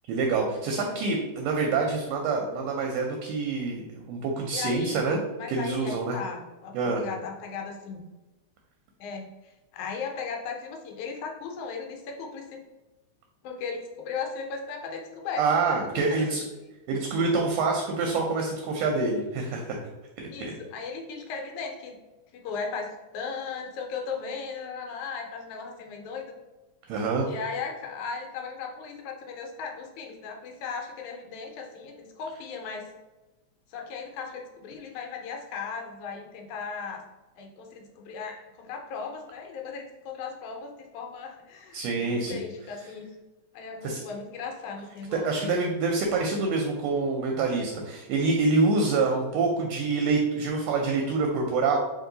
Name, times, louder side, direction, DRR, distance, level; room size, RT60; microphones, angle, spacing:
voice 1, 0.1-5.2 5.5-6.2 6.7-7.0 15.4-16.4 16.9-19.8 20.2-20.5 26.9-27.3 41.7-42.4 43.8-44.0 45.1-51.8, right 3 dB, 80° right, 1 dB, 1.6 m, -26 dB
voice 2, 4.5-5.0 5.4-8.0 9.0-12.6 13.4-15.8 20.3-21.9 22.3-26.3 27.2-32.9 33.7-37.0 37.4-43.1 43.5-45.5, left 5 dB, 85° left, 2 dB, 2.1 m, -37 dB
4.5 x 2.8 x 3.8 m, 1.1 s
omnidirectional pair, 3.4 m